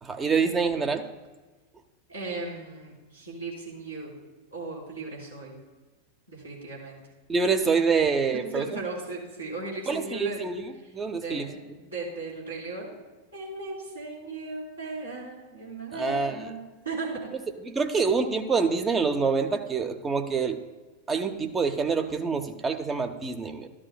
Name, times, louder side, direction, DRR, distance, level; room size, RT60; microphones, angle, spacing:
voice 1, 0.0-1.1 7.3-8.6 9.9-10.6 10.9-11.5 16.0-16.4 17.7-20.6 21.1-23.7, right 5 dB, 20° right, 6 dB, 0.7 m, -26 dB
voice 2, 2.1-4.2 4.5-5.6 6.3-7.0 8.5-10.4 10.8-10.9 11.2-12.9 13.3-16.6 16.8-17.1, right 3 dB, 80° right, -5 dB, 3.6 m, -37 dB
13.5 x 11.0 x 2.3 m, 1.2 s
figure-of-eight pair, 90°, 0 cm